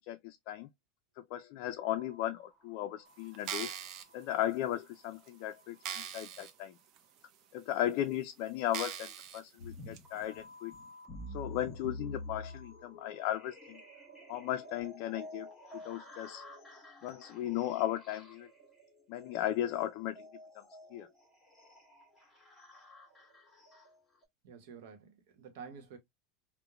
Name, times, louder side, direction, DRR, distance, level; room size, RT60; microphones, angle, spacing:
voice 1, 0.1-0.7 1.2-3.7 4.1-6.7 7.5-10.7 11.3-13.8 14.3-15.5 15.7-16.4 17.0-18.5 19.1-20.3 20.5-20.6 20.9-21.1, left 12 dB, 55° left, 0.3 m, -36 dB
sound 1, 1.8-7.1 10.0-14.8, left 2 dB, 25° right, 1.4 m, -60 dB
sound 2, 3.3-4.0 4.7-4.8 5.3-5.4 5.8-6.5 7.0-7.1 7.8-7.9 8.7-9.4 9.9-10.0, right 9 dB, 45° right, 0.4 m, -40 dB
sound 3, 9.6-24.2, left 1 dB, 10° left, 1.5 m, -49 dB
voice 2, 24.4-26.0, right 6 dB, 75° right, 0.9 m, -49 dB
2.9 x 2.1 x 2.3 m
supercardioid pair, 150°, 0 cm